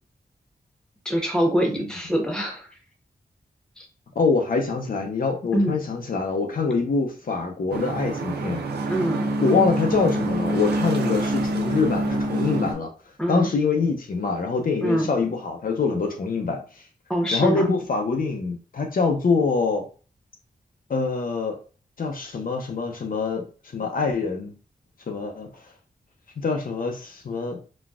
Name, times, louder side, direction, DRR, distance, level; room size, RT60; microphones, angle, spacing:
voice 1, 1.0-2.7 3.8-3.9 5.5-5.7 8.9-9.3 13.2-13.5 14.8-15.1 17.1-17.6, equal, 5° left, 0.9 m, -24 dB
voice 2, 4.2-8.6 9.4-12.9 13.3-16.8 17.3-19.9 20.9-21.6 22.0-23.5 23.7-24.5 25.1-25.7 26.4-27.6, left 4 dB, 60° left, 0.6 m, -25 dB
sound 1, 7.7-12.7, right 1 dB, 90° right, 0.6 m, -26 dB
4.0 x 2.3 x 2.3 m
wide cardioid pair, 90°, 17 cm